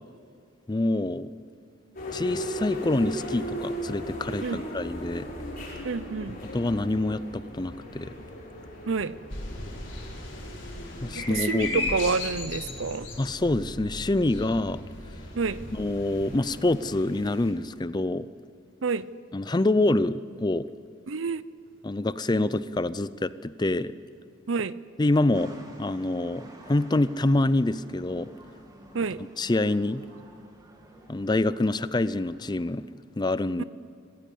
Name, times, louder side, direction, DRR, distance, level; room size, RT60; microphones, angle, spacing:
voice 1, 0.7-1.3 2.1-5.3 6.5-8.1 11.0-11.9 13.2-14.8 15.7-18.3 19.3-20.7 21.8-23.9 25.0-25.5 25.8-28.3 29.4-30.0 31.1-32.9 33.2-33.6, left 2 dB, 20° left, 16 dB, 0.5 m, -26 dB
sound 1, 1.9-17.5, equal, 45° left, 5.6 m, -39 dB
voice 2, 5.8-6.4 8.9-9.1 11.1-13.1 15.4-15.6 18.8-19.0 21.1-21.4 24.5-24.7 28.9-29.2 33.6-33.7, right 4 dB, 80° right, 17 dB, 0.7 m, -28 dB
sound 2, 9.3-16.6, left 3 dB, 65° left, 5.1 m, -37 dB
sound 3, 25.3-32.6, right 1 dB, 20° right, 2.4 m, -50 dB
25.5 x 15.5 x 8.5 m, 2.3 s
head